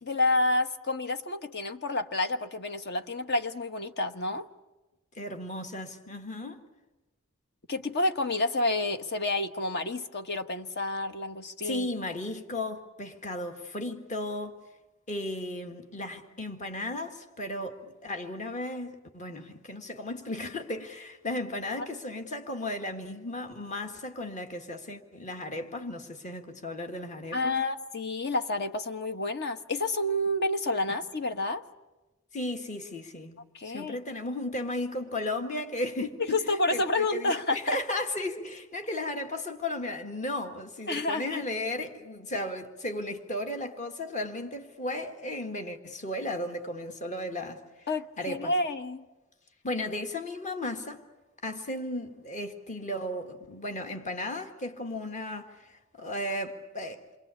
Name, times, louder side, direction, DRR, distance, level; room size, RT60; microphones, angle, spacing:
voice 1, 0.0-4.5 7.7-11.9 27.3-31.6 33.5-34.0 36.3-37.8 40.9-41.4 47.9-49.0, left 2 dB, 55° left, 1.2 m, -29 dB
voice 2, 5.2-6.6 11.6-14.5 15.1-27.6 30.9-31.0 32.3-33.4 33.6-36.4 36.7-47.9 48.2-48.5 49.6-51.0 51.4-57.0, left 1 dB, 35° left, 1.8 m, -35 dB
28.0 x 23.0 x 8.4 m
head